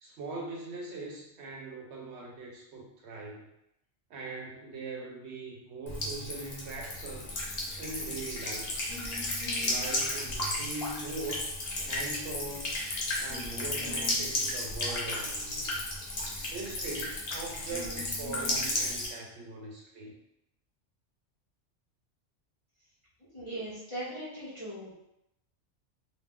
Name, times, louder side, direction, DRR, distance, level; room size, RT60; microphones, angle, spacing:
voice 1, 0.0-3.5 4.1-7.3 7.8-8.7 9.6-11.5 11.8-12.8 13.2-15.7 16.5-20.1, right 3 dB, 65° right, -1 dB, 0.8 m, -41 dB
Buzz / Water tap faucet / Trickle dribble, 5.9-19.1, left 1 dB, 55° left, 0.9 m, -34 dB
voice 2, 23.3-24.9, right 1 dB, 30° left, -9 dB, 0.6 m, -39 dB
2.6 x 2.2 x 3.5 m, 0.82 s
omnidirectional pair, 1.3 m